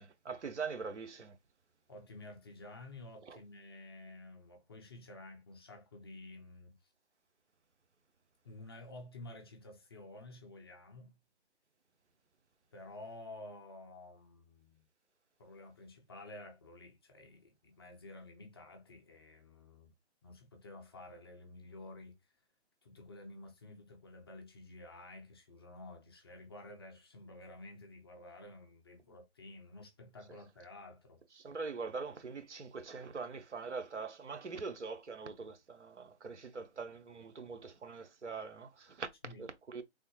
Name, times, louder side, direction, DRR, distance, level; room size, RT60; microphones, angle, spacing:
voice 1, 0.0-1.4 3.2-3.4 31.4-39.1 39.4-39.8, right 4 dB, 85° right, 0.7 m, -43 dB
voice 2, 1.9-6.8 8.4-11.2 12.7-14.9 15.4-19.9 20.2-22.2 22.8-31.4 39.2-39.5, left 2 dB, 20° left, 0.5 m, -51 dB
3.4 x 2.1 x 3.0 m
figure-of-eight pair, 140°, 34 cm